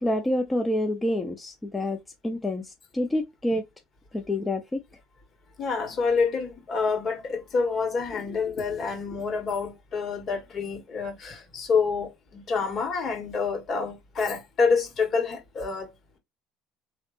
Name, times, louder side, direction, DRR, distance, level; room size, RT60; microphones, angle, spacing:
voice 1, 0.0-3.6 4.1-4.8, left 1 dB, 15° left, 0.7 m, -28 dB
voice 2, 5.6-15.9, left 5 dB, 50° left, 1.9 m, -27 dB
3.8 x 3.2 x 3.2 m
hypercardioid pair, 65°, 0 cm